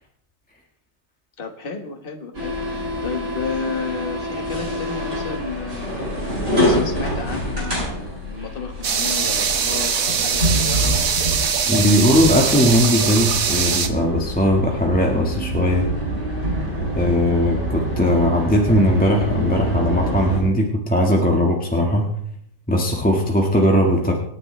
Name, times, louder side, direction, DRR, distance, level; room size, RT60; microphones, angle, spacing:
voice 1, 1.4-11.1, left 5 dB, 30° left, 4 dB, 1.7 m, -32 dB
sound 1, 2.3-20.4, right 1 dB, 30° right, 8.2 m, -26 dB
Running water bathroom, 8.8-13.9, right 6 dB, 55° right, 1.5 m, -22 dB
voice 2, 11.7-15.9 16.9-22.1 22.7-24.1, equal, 5° left, -1 dB, 1.5 m, -19 dB
25.5 x 9.8 x 3.4 m, 0.72 s
omnidirectional pair, 1.9 m